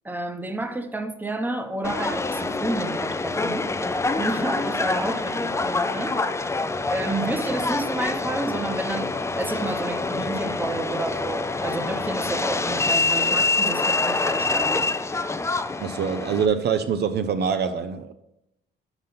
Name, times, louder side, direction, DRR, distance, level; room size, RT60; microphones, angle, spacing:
voice 1, 0.0-3.7 4.1-6.2 6.9-14.9, right 2 dB, 10° right, 0.9 m, -30 dB
Subway metro underground, 1.8-16.5, left 3 dB, 15° left, 0.5 m, -26 dB
voice 2, 15.8-18.1, right 6 dB, 55° right, 0.6 m, -24 dB
6.0 x 5.2 x 5.5 m
cardioid pair, 90°, 20 cm